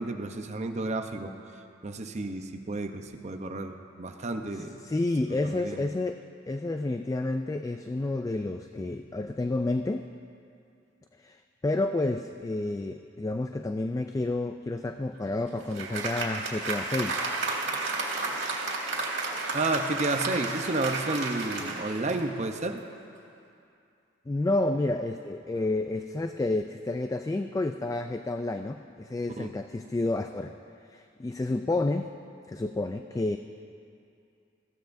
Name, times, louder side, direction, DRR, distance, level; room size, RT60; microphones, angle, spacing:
voice 1, 0.0-1.3 1.8-4.8 5.4-5.8 19.5-22.8 29.4-29.5, right 2 dB, 40° right, 6 dB, 0.7 m, -31 dB
voice 2, 4.5-10.1 11.2-17.2 24.3-30.5 30.9-32.1 32.5-33.4, left 2 dB, 20° left, 7 dB, 0.3 m, -30 dB
Applause, 15.1-22.7, right 3 dB, 75° right, 2.2 m, -32 dB
21.0 x 15.0 x 2.6 m, 2.5 s
head